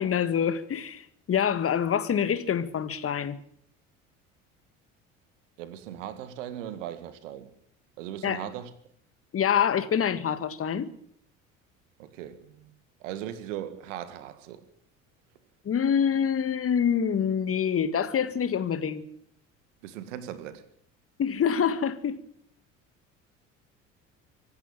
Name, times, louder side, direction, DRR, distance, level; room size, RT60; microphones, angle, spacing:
voice 1, 0.0-3.4 8.2-8.5 9.3-10.9 15.7-19.0 21.2-22.2, left 8 dB, 35° left, 1.7 m, -26 dB
voice 2, 5.6-7.5 8.0-8.7 12.0-12.7 13.0-14.6 19.8-20.6, right 11 dB, 70° right, 2.0 m, -38 dB
25.0 x 11.5 x 9.0 m
figure-of-eight pair, 60°, 39 cm